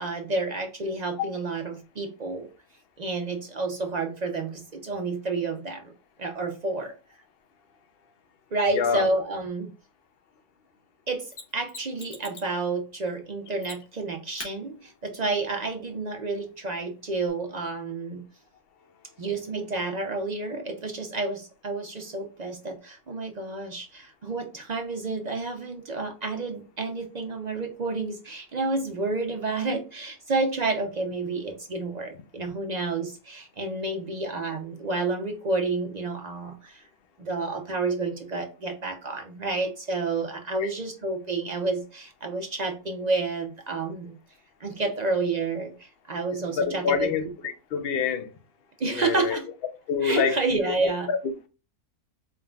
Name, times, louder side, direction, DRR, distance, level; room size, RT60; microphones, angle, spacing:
voice 1, 0.0-2.5 3.0-5.9 6.2-6.9 8.5-9.7 11.1-18.2 19.2-36.8 37.2-44.2 44.6-47.1 48.8-49.5 50.0-51.1, right 3 dB, 55° right, 0.4 m, -30 dB
voice 2, 8.7-9.1 40.6-40.7 46.6-47.2 47.7-48.3 48.9-49.4 49.9-50.4 51.1-51.2, left 6 dB, 55° left, 0.7 m, -25 dB
Mechanisms, 11.3-12.6 13.6-14.0 14.4-14.5 17.3-17.4, left 4 dB, 75° left, 1.6 m, -42 dB
4.4 x 3.6 x 2.3 m
omnidirectional pair, 1.6 m